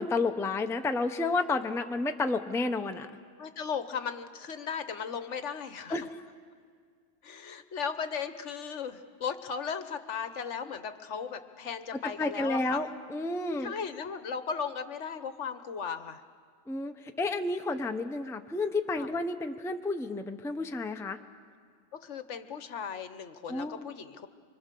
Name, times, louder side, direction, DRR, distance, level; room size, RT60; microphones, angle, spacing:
voice 1, 0.0-3.1 5.9-6.1 12.2-13.7 16.7-21.2 23.5-23.9, left 3 dB, 5° left, 6 dB, 0.6 m, -31 dB
voice 2, 3.4-5.9 7.2-12.8 13.6-16.2 19.0-19.1 22.0-24.3, left 6 dB, 65° left, 10 dB, 1.2 m, -36 dB
25.0 x 24.5 x 6.8 m, 2.1 s
omnidirectional pair, 1.4 m